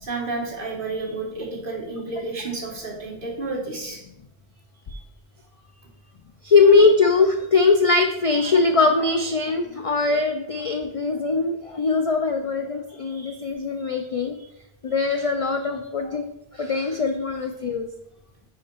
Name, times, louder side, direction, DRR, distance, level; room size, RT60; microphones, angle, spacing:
voice 1, 0.0-4.0 4.9-5.0 13.0-13.5 13.8-13.9, right 3 dB, 60° right, -1 dB, 1.6 m, -31 dB
voice 2, 6.4-14.4 14.8-16.2 16.5-17.9, left 4 dB, 55° left, 5 dB, 0.4 m, -21 dB
5.1 x 4.8 x 4.5 m, 0.82 s
omnidirectional pair, 1.0 m